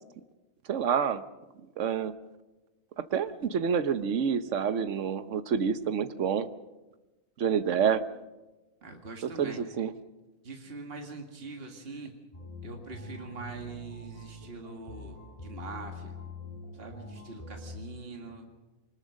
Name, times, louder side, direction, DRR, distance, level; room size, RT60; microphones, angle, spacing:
voice 1, 0.7-1.2 1.8-2.1 3.1-6.5 7.4-8.0 9.4-9.9, right 7 dB, 60° right, 11 dB, 1.3 m, -28 dB
voice 2, 8.8-9.7 10.4-12.1 12.6-15.2 15.4-16.1 16.7-18.5, right 3 dB, 45° right, 3 dB, 2.2 m, -43 dB
sound 1, 12.3-17.8, left 2 dB, 25° left, 3.4 m, -44 dB
24.0 x 20.0 x 6.4 m, 1.1 s
omnidirectional pair, 1.4 m